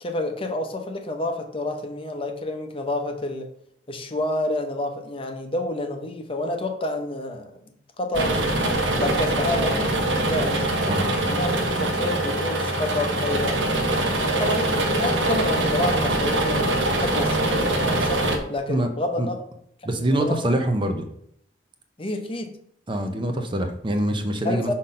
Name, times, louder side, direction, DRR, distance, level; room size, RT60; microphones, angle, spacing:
voice 1, 0.0-3.5 3.9-7.5 8.0-8.4 9.0-11.5 11.8-13.6 14.2-19.4 20.0-20.5 22.0-22.5 24.4-24.7, left 1 dB, 30° left, 4 dB, 0.8 m, -29 dB
sound 1, 8.1-18.4, right 1 dB, 85° right, 1.2 m, -23 dB
voice 2, 19.8-21.1 22.9-24.7, right 1 dB, 25° right, 5 dB, 0.6 m, -24 dB
5.8 x 3.7 x 5.5 m, 0.70 s
head